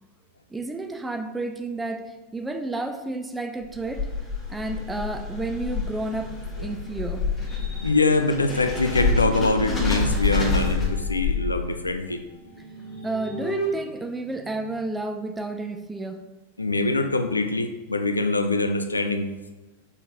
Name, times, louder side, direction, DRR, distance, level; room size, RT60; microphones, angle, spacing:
voice 1, 0.5-4.1 4.5-6.4 6.6-7.3 13.0-16.2, right 2 dB, 10° right, 5 dB, 0.4 m, -31 dB
sound 1, 3.6-12.0, left 4 dB, 20° left, 1.1 m, -28 dB
sound 2, 7.3-9.4 9.9-15.1, right 2 dB, 50° left, 0.8 m, -38 dB
voice 2, 7.8-12.2 16.6-19.3, left 2 dB, 80° left, 7 dB, 0.3 m, -24 dB
4.4 x 3.6 x 2.6 m, 1.2 s
figure-of-eight pair, 90°, 0 cm